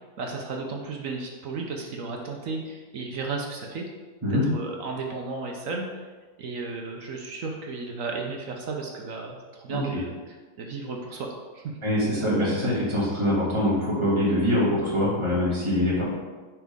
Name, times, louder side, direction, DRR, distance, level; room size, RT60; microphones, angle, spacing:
voice 1, 0.2-3.9 4.3-6.1 6.4-10.1 10.6-11.3 11.5-11.8, right 3 dB, 60° right, 1 dB, 1.1 m, -34 dB
voice 2, 9.7-10.0 11.8-16.0, left 1 dB, 15° right, -8 dB, 2.3 m, -24 dB
9.7 x 4.6 x 3.6 m, 1.4 s
omnidirectional pair, 1.7 m